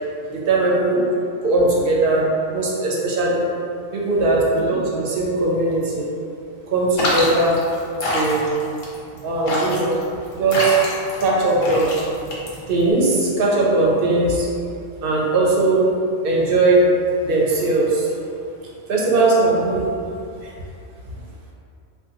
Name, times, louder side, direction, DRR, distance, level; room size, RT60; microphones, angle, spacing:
voice 1, 0.3-1.0 1.4-3.4 3.9-6.1 6.7-7.6 8.1-8.5 9.2-10.0 10.3-10.7 11.2-11.9 12.7-14.5 15.0-15.9 16.2-16.8 17.2-18.1 18.9-19.8, right 2 dB, 55° right, -4 dB, 0.7 m, -19 dB
sound 1, 7.0-12.9, left 1 dB, 85° left, 1.1 m, -25 dB
2.7 x 2.2 x 3.7 m, 2.5 s
omnidirectional pair, 1.3 m